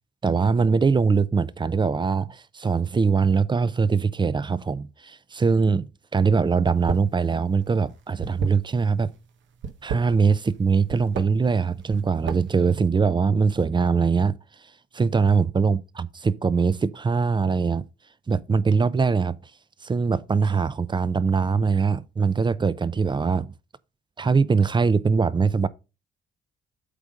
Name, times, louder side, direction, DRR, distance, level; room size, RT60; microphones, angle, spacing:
voice 1, 0.2-5.9 6.1-9.1 9.8-14.4 14.9-17.8 18.3-19.4 19.8-23.5 24.2-25.7, right 5 dB, 25° right, 0.5 m, -22 dB
sound 1, 6.7-7.2 7.4-9.1 9.5-10.6 10.9-11.3 11.8-12.6, right 6 dB, 70° right, 1.1 m, -32 dB
8.3 x 3.6 x 5.1 m
cardioid pair, 90°, 20 cm